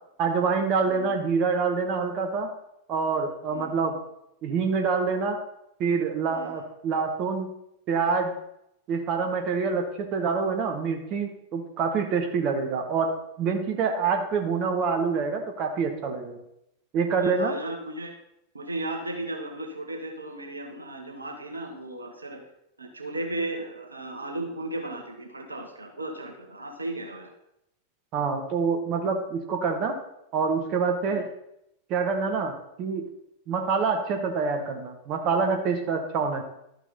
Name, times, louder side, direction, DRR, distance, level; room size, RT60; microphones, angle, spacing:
voice 1, 0.2-2.5 2.9-4.0 4.4-5.4 5.8-7.5 7.9-8.3 8.9-16.4 16.9-17.5 28.1-30.0 30.3-31.3 31.9-33.1 33.5-36.4, right 5 dB, 40° right, 4 dB, 1.3 m, -26 dB
voice 2, 0.9-1.2 3.5-3.8 6.3-6.6 17.2-18.1 18.5-22.4 22.8-27.3 31.1-31.2, right 2 dB, 80° right, 4 dB, 1.2 m, -35 dB
12.5 x 6.3 x 4.2 m, 0.81 s
figure-of-eight pair, 90°, 0 cm